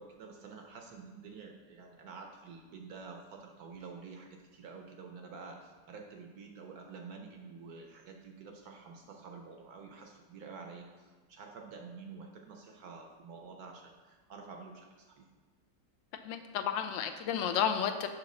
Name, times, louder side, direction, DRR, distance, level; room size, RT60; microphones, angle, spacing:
voice 1, 0.0-15.3, right 4 dB, 65° right, 3 dB, 1.0 m, -49 dB
voice 2, 16.2-18.1, left 8 dB, 85° left, 8 dB, 1.3 m, -32 dB
6.2 x 5.8 x 3.8 m, 1.4 s
omnidirectional pair, 2.0 m